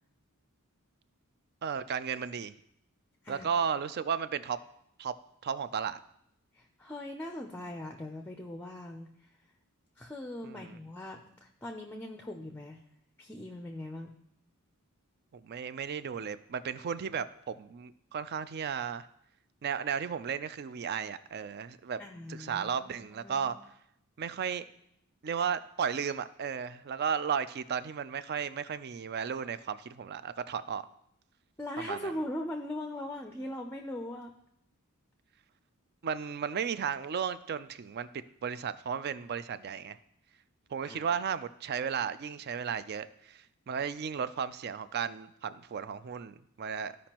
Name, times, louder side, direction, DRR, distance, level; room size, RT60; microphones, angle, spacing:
voice 1, 1.6-2.5 3.3-4.6 5.0-5.1 5.4-6.0 10.4-10.8 15.3-19.1 19.6-22.0 22.3-23.6 24.2-24.6 25.2-30.8 31.8-32.1 36.0-40.0 40.7-47.1, right 7 dB, 45° right, 14 dB, 0.4 m, -34 dB
voice 2, 6.5-9.3 10.0-12.8 13.2-14.1 22.0-23.5 31.6-34.3 40.9-41.1, left 1 dB, 10° left, 4 dB, 0.5 m, -40 dB
13.5 x 5.1 x 2.9 m, 0.74 s
head